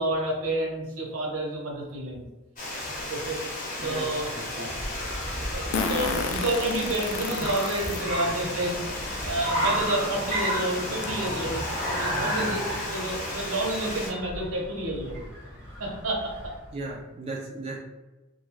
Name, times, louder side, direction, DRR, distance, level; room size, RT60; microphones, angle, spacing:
voice 1, 0.0-2.3 3.1-3.4 3.8-4.3 4.6-4.7 5.3-8.8 9.2-11.6 11.9-15.2 15.8-16.5, right 1 dB, 75° right, -1 dB, 0.8 m, -29 dB
Water, 2.6-14.1, left 1 dB, 40° left, 0.8 m, -34 dB
Fart, 3.0-3.1 5.7-8.0 8.7-8.8 10.0-10.1 10.5-10.6 11.0-11.3, left 4 dB, 70° left, 0.3 m, -31 dB
Car, 3.8-16.7, equal, 15° left, 0.9 m, -34 dB
voice 2, 4.3-4.7 9.2-9.3 12.1-12.3 16.7-17.8, right 2 dB, 25° right, -4 dB, 0.3 m, -37 dB
2.6 x 2.3 x 3.0 m, 1.1 s
head